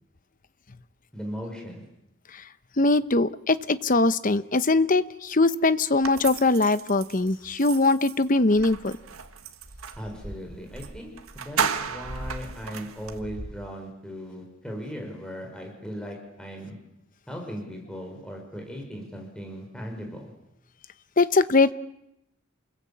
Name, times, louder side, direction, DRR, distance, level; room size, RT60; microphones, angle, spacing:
voice 1, 1.1-1.8 10.0-11.1 11.3-16.7 17.3-20.2, equal, 5° left, 1 dB, 5.5 m, -38 dB
voice 2, 2.8-9.0 21.2-21.7, left 3 dB, 40° left, 13 dB, 0.9 m, -21 dB
sound 1, 6.0-10.1 10.8-10.9 11.2-13.2, right 6 dB, 80° right, 1.9 m, -34 dB
sound 2, 8.5-9.1 9.6-13.7, right 1 dB, 55° right, 1.6 m, -42 dB
28.5 x 21.5 x 8.6 m, 0.85 s
head